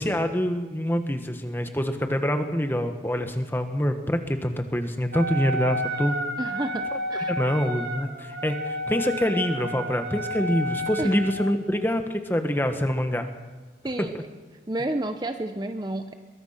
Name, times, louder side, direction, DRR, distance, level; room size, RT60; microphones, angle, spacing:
voice 1, 0.0-6.2 7.3-13.3 14.0-14.2, equal, 10° left, 6 dB, 1.5 m, -26 dB
Wind instrument woodwind instrument, 5.1-11.6, equal, 65° right, 2.0 m, -31 dB
voice 2, 6.4-7.3 11.0-11.1 13.8-14.2 14.7-16.2, right 1 dB, 25° right, 7 dB, 0.9 m, -30 dB
22.5 x 22.5 x 5.9 m, 1.3 s
head